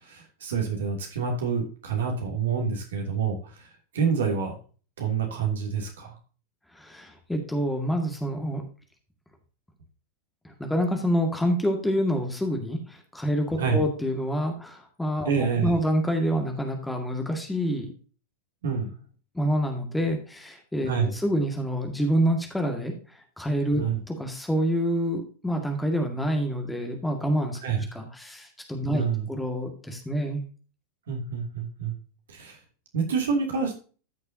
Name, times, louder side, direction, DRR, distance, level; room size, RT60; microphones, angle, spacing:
voice 1, 0.0-4.5 5.0-6.1 13.6-13.8 15.2-15.7 18.6-19.0 20.9-21.1 23.8-24.0 27.6-27.8 28.9-29.3 31.1-31.9 32.3-32.6 32.9-33.7, right 6 dB, 60° right, 2 dB, 2.9 m, -27 dB
voice 2, 6.8-8.6 10.6-15.3 15.6-17.9 19.4-22.9 23.4-27.6 27.9-30.4, equal, 5° left, 3 dB, 2.0 m, -27 dB
13.5 x 6.5 x 2.8 m, 0.37 s
figure-of-eight pair, 90°, 0 cm